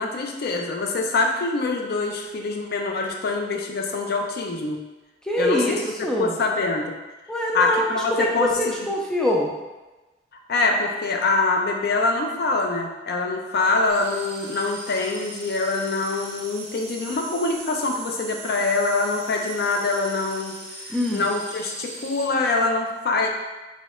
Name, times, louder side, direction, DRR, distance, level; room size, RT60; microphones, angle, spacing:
voice 1, 0.0-4.8 5.4-5.8 6.2-6.9 7.5-8.7 10.5-20.5 21.1-23.3, left 3 dB, 60° left, 2 dB, 0.5 m, -24 dB
voice 2, 5.2-6.4 7.3-9.5 20.9-21.3, equal, 5° left, -2 dB, 0.4 m, -24 dB
sound 1, 13.9-22.3, right 2 dB, 60° right, 0.9 m, -40 dB
4.1 x 2.8 x 2.4 m, 1.1 s
head